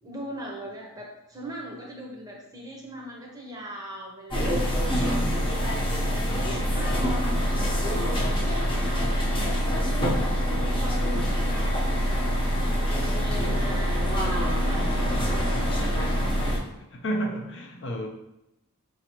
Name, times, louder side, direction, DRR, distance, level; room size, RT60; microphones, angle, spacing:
voice 1, 0.0-4.6 6.7-10.3 10.6-14.0 14.6-16.2, equal, 15° right, -2 dB, 0.7 m, -40 dB
sound 1, 4.3-16.6, equal, 25° left, 0.8 m, -25 dB
voice 2, 4.9-5.5 16.9-18.1, right 1 dB, 55° left, 2 dB, 0.6 m, -31 dB
4.9 x 2.7 x 2.9 m, 0.88 s
head